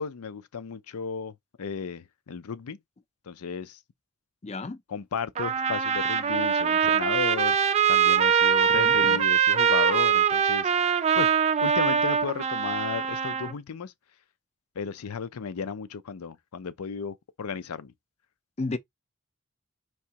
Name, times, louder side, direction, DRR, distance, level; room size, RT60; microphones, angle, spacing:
voice 1, 0.0-2.8 3.3-3.8 4.9-7.6 7.9-10.7 11.1-11.3 11.6-13.9 14.8-17.9, left 6 dB, 90° left, 0.5 m, -34 dB
voice 2, 4.4-4.8 8.7-9.2 18.6-18.8, left 3 dB, 30° left, 0.5 m, -33 dB
Trumpet, 5.4-13.5, right 7 dB, 30° right, 0.4 m, -23 dB
4.7 x 3.0 x 2.8 m
head